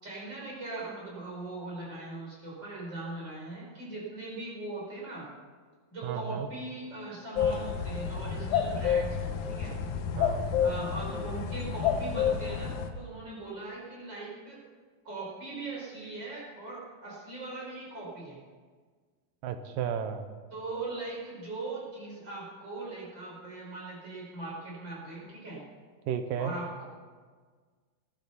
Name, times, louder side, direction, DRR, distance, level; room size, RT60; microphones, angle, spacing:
voice 1, 0.0-5.3 5.9-9.7 10.6-14.6 15.0-18.4 20.5-25.6 26.4-26.8, right 2 dB, 30° right, -5 dB, 5.5 m, -40 dB
voice 2, 6.0-6.5 10.2-10.5 19.4-20.2 26.1-26.5, right 8 dB, 75° right, 8 dB, 2.4 m, -33 dB
sound 1, 7.4-12.9, left 7 dB, 70° left, 2.0 m, -29 dB
20.5 x 12.5 x 4.2 m, 1.5 s
omnidirectional pair, 4.3 m